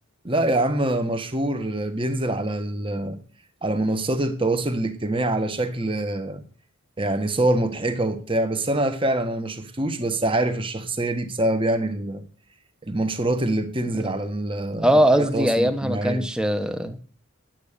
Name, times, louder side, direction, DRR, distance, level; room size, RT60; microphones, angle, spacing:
voice 1, 0.2-3.2 3.6-6.4 7.0-12.2 12.8-16.2, right 1 dB, 25° right, 1.5 m, -25 dB
voice 2, 14.8-17.0, equal, 5° right, 1.1 m, -20 dB
11.0 x 9.4 x 6.8 m
head